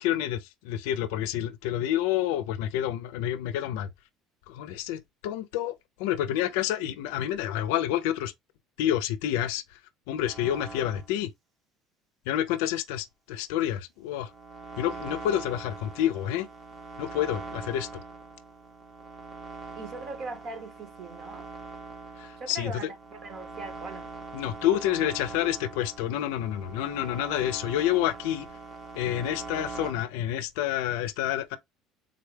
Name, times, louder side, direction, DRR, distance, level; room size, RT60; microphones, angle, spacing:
voice 1, 0.0-3.9 4.5-5.7 6.0-8.3 8.8-9.6 10.1-11.3 12.3-14.3 14.8-16.5 17.0-17.9 22.2-22.9 24.3-28.5 29.0-31.6, left 12 dB, 90° left, 0.4 m, -28 dB
sound 1, 10.2-11.1 14.1-29.9, right 4 dB, 25° right, 0.8 m, -42 dB
voice 2, 19.7-21.4 22.4-22.8 23.2-24.1, right 3 dB, 50° right, 1.2 m, -39 dB
3.7 x 2.2 x 3.2 m
cardioid pair, 130°, 0 cm